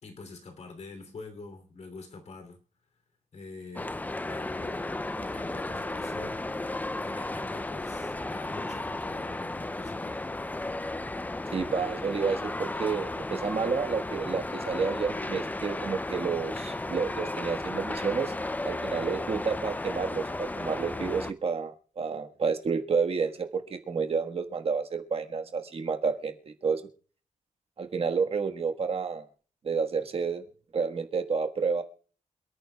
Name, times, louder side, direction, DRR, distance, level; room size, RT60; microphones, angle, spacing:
voice 1, 0.0-2.6 3.3-4.0 4.2-6.4 6.9-10.2, left 3 dB, 60° left, 7 dB, 2.9 m, -45 dB
sound 1, 3.8-21.3, left 2 dB, 10° left, 0.5 m, -34 dB
voice 2, 11.5-18.3 18.6-26.8 27.8-29.2 29.6-30.4 30.7-31.8, right 5 dB, 50° right, 5 dB, 1.4 m, -30 dB
27.5 x 9.4 x 2.3 m, 0.41 s
cardioid pair, 100°, 13 cm